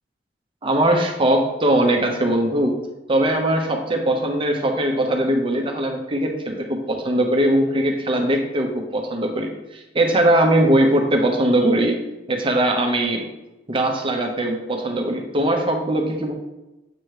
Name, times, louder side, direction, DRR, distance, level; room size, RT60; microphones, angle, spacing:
voice 1, 0.6-2.8 3.1-12.0 12.3-13.3 13.7-16.3, right 1 dB, 30° right, 3 dB, 0.9 m, -20 dB
7.8 x 3.0 x 4.8 m, 1.0 s
head